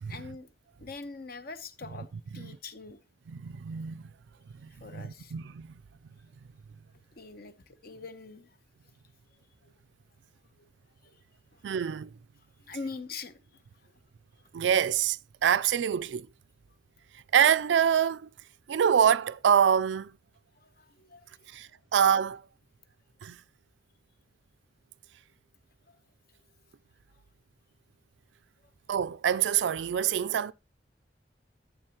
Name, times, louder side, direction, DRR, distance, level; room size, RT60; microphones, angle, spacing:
voice 1, 0.1-0.5 0.8-2.1 2.3-3.0 4.7-5.4 7.1-8.6 9.6-9.7 10.6-10.7 11.0-11.2 11.5-11.6 12.6-13.9 18.7-18.8 20.5-21.6 25.9-26.0, left 4 dB, 60° left, 0.9 m, -44 dB
voice 2, 3.3-4.0 4.6-5.7 11.6-12.1 14.5-16.3 17.3-18.3 18.7-20.1 21.5-22.4 23.2-23.4 28.9-30.5, right 8 dB, 85° right, 0.4 m, -26 dB
12.0 x 7.3 x 2.9 m
head